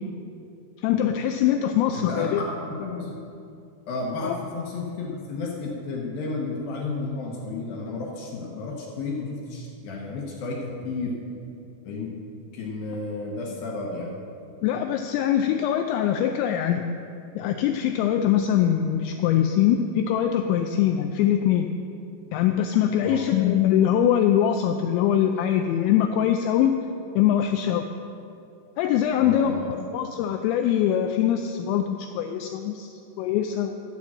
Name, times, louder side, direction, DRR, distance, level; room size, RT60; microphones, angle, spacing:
voice 1, 0.8-2.4 4.2-4.4 14.6-16.9 17.4-21.8 22.3-26.7 27.2-27.8 28.8-32.9 33.2-33.7, left 10 dB, 85° left, 6 dB, 2.6 m, -23 dB
voice 2, 1.9-3.2 3.9-11.2 11.9-12.1 12.5-14.1 23.0-23.3 29.2-29.7, left 3 dB, 70° left, -2 dB, 2.3 m, -32 dB
12.0 x 6.8 x 7.3 m, 2.7 s
omnidirectional pair, 5.7 m